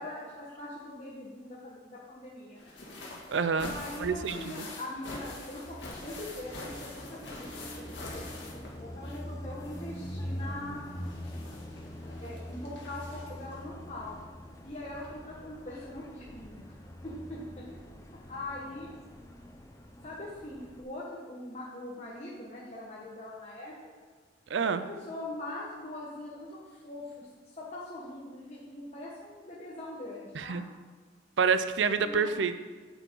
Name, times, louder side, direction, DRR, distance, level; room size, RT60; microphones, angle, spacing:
voice 1, 0.0-2.7 3.6-10.8 12.0-14.2 14.6-16.7 17.0-17.8 18.3-18.9 20.0-23.7 24.6-27.3 27.5-30.6 32.0-32.3, left 1 dB, 35° left, -6 dB, 1.2 m, -42 dB
sound 1, 2.5-9.3 9.6-13.5 14.6-14.7 15.0-15.1, left 2 dB, 70° left, 1.9 m, -45 dB
voice 2, 3.3-4.7 24.5-24.8 30.3-30.6 31.4-32.5, right 5 dB, 80° right, 12 dB, 0.5 m, -28 dB
Car passing by, 5.9-20.8, equal, 15° left, 0.6 m, -44 dB
8.9 x 6.6 x 4.6 m, 1.4 s
head